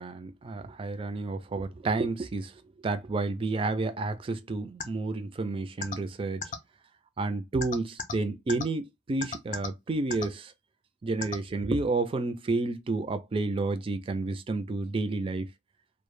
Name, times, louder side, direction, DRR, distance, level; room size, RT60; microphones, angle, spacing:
voice 1, 0.0-2.5 2.8-6.5 7.2-10.5 11.0-15.5, right 3 dB, 30° right, 0.3 m, -30 dB
sound 1, 4.8-4.9 5.8-6.0 6.4-6.6 7.6-8.1 8.5-8.6 9.2-9.7 10.1-10.3 11.2-11.4, left 4 dB, 45° left, 0.4 m, -32 dB
2.1 x 2.0 x 3.1 m
head